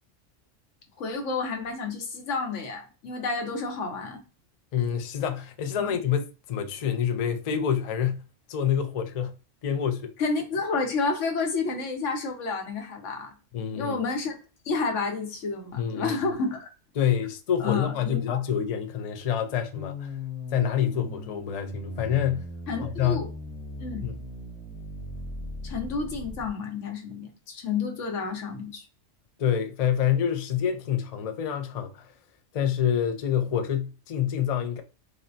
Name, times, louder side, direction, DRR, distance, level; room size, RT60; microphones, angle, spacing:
voice 1, 1.0-4.2 5.8-6.0 10.2-13.3 13.7-14.4 14.6-16.7 17.6-18.4 22.7-23.3 23.8-24.1 25.6-28.8, left 4 dB, 80° left, 1.2 m, -30 dB
voice 2, 4.7-8.2 8.5-9.4 9.6-10.1 13.5-14.0 15.8-16.2 17.0-20.1 20.5-22.5 22.8-23.2 24.0-24.2 29.4-32.1 32.5-34.8, left 9 dB, 60° left, 0.4 m, -27 dB
sound 1, 19.7-26.5, left 1 dB, 30° left, 0.9 m, -38 dB
4.0 x 2.1 x 2.5 m
omnidirectional pair, 1.3 m